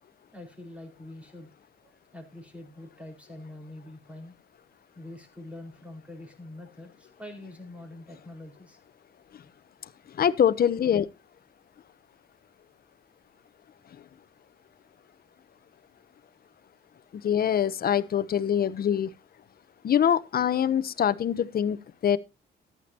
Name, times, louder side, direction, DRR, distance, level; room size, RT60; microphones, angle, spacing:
voice 1, 0.3-1.5 1.8-4.3 4.9-8.8 18.0-18.1, left 1 dB, 5° right, 4.7 m, -45 dB
voice 2, 10.1-11.1 17.1-19.1 19.8-22.2, left 9 dB, 50° left, 0.8 m, -24 dB
14.0 x 10.5 x 2.9 m
cardioid pair, 90°, 20 cm